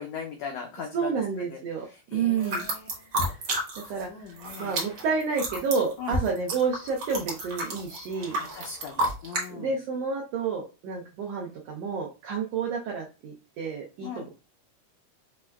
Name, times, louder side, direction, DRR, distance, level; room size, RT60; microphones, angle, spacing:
voice 1, 0.0-3.1 3.8-4.8 6.0-6.2 8.4-9.8 14.0-14.3, left 6 dB, 85° left, 1 dB, 1.4 m, -40 dB
voice 2, 0.9-2.7 3.3-3.4 3.9-4.3 4.6-8.4 9.5-14.3, right 5 dB, 90° right, 0 dB, 1.4 m, -30 dB
sound 1, 2.4-4.0 4.3-9.5, right 1 dB, 65° right, 1.1 m, -31 dB
6.0 x 2.2 x 2.2 m, 0.31 s
omnidirectional pair, 3.6 m